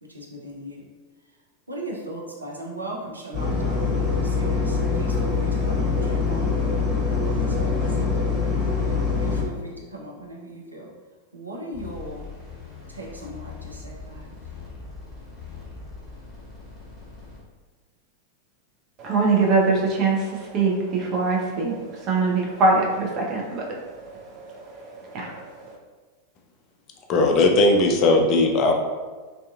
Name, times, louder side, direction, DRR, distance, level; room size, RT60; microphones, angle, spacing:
voice 1, 0.0-0.8 1.7-6.6 7.3-10.9 11.3-12.3 12.9-14.4, right 1 dB, 80° right, -2 dB, 0.5 m, -38 dB
sound 1, 3.3-9.4, left 4 dB, 20° left, 1.0 m, -23 dB
sound 2, 11.7-17.4, left 4 dB, ahead, 1.3 m, -41 dB
voice 2, 19.0-25.8, right 3 dB, 35° right, -2 dB, 0.6 m, -24 dB
voice 3, 27.1-28.7, left 2 dB, 35° left, 2 dB, 0.4 m, -18 dB
2.5 x 2.4 x 2.4 m, 1.3 s
figure-of-eight pair, 90°, 0 cm